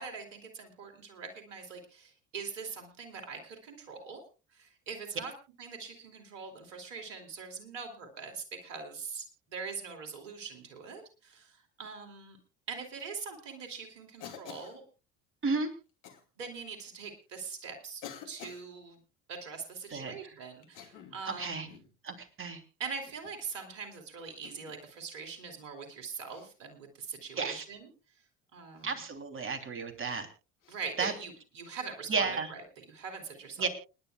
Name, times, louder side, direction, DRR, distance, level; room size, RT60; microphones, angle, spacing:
voice 1, 0.0-4.2 4.5-5.3 5.6-12.4 12.7-14.8 16.4-19.0 19.3-21.7 22.8-27.9 28.5-29.0 30.7-33.7, right 5 dB, 70° right, 4 dB, 2.9 m, -43 dB
Cough, 14.2-14.8 16.0-16.2 17.1-17.2 18.0-18.7 20.6-21.2 21.7-21.9 23.0-23.4 24.4-24.8 26.3-26.5 28.7-28.9 30.6-30.8, left 9 dB, 55° left, 2.7 m, -48 dB
voice 2, 21.2-21.7 22.0-22.6 27.4-27.6 28.8-30.3 31.0-31.1 32.1-32.5 33.6-33.7, right 4 dB, 35° right, 7 dB, 3.1 m, -32 dB
29.0 x 10.5 x 2.3 m, 0.32 s
figure-of-eight pair, 60°, 37 cm